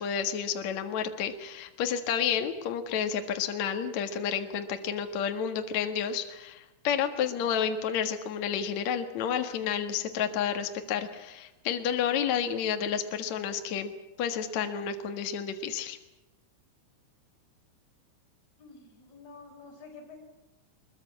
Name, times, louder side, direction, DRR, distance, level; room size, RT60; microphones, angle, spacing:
voice 1, 0.0-13.9 14.2-16.0, left 8 dB, 70° left, 6 dB, 1.7 m, -30 dB
voice 2, 18.6-20.2, left 4 dB, 30° left, -1 dB, 5.9 m, -49 dB
23.5 x 22.0 x 8.5 m, 0.97 s
omnidirectional pair, 5.9 m